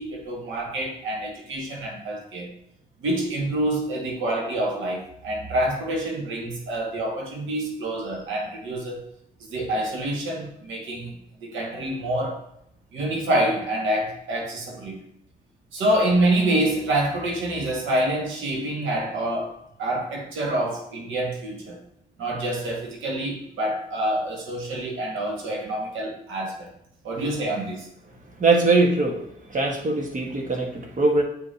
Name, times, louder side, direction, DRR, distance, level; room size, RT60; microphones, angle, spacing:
voice 1, 0.0-2.5 3.0-9.0 9.5-12.4 12.9-14.9 15.7-21.8 22.2-26.7 27.0-27.9, right 1 dB, 75° right, -1 dB, 1.9 m, -27 dB
voice 2, 28.4-29.2 29.5-31.2, right 3 dB, 40° right, 2 dB, 1.6 m, -21 dB
7.4 x 5.2 x 2.8 m, 0.75 s
cardioid pair, 75°, 20 cm